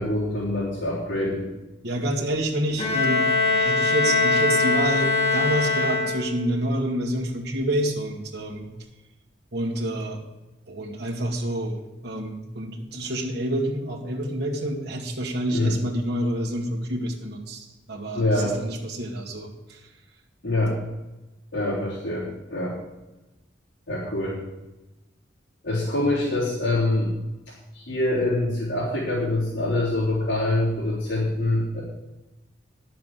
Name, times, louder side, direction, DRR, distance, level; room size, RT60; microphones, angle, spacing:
voice 1, 0.0-1.4 15.5-15.7 18.1-18.5 20.4-20.8 21.5-22.8 23.9-24.4 25.6-27.1 27.7-31.8, left 1 dB, 75° left, -10 dB, 3.8 m, -25 dB
voice 2, 1.8-8.7 9.5-10.2 10.7-19.8, right 1 dB, 60° right, -2 dB, 2.1 m, -28 dB
Bowed string instrument, 2.8-6.6, left 3 dB, 30° left, 2.2 m, -22 dB
10.5 x 7.5 x 7.6 m, 1.0 s
head